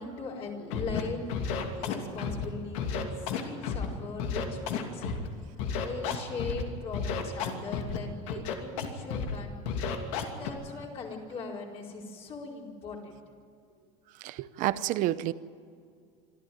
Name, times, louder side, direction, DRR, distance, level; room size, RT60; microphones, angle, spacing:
voice 1, 0.0-5.2 5.6-9.6 10.1-13.1, left 4 dB, 35° left, -2 dB, 4.6 m, -40 dB
Scratching (performance technique), 0.7-1.0 1.3-2.4 2.7-3.9 4.2-5.3 5.6-6.6 6.9-8.0 8.3-8.9 9.1-9.4 9.7-10.5, left 6 dB, 85° left, 2.8 m, -31 dB
voice 2, 14.2-15.3, right 14 dB, 50° right, 15 dB, 0.9 m, -29 dB
25.5 x 14.0 x 9.3 m, 2.2 s
cardioid pair, 155°, 17 cm